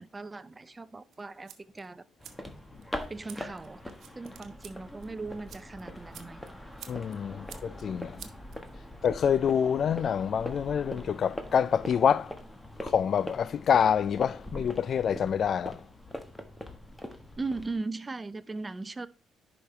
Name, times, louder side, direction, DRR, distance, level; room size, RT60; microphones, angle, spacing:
voice 1, 0.0-2.1 3.1-3.8 4.1-6.4 8.2-8.3 17.4-19.1, right 3 dB, 25° right, 0.6 m, -38 dB
sound 1, 1.1-9.1, right 9 dB, 65° right, 1.0 m, -53 dB
sound 2, 2.2-17.7, left 1 dB, 10° left, 1.5 m, -42 dB
voice 2, 6.9-8.2 9.0-12.3 12.8-15.8, left 8 dB, 55° left, 0.3 m, -26 dB
10.5 x 5.2 x 3.3 m
hypercardioid pair, 55°, 0 cm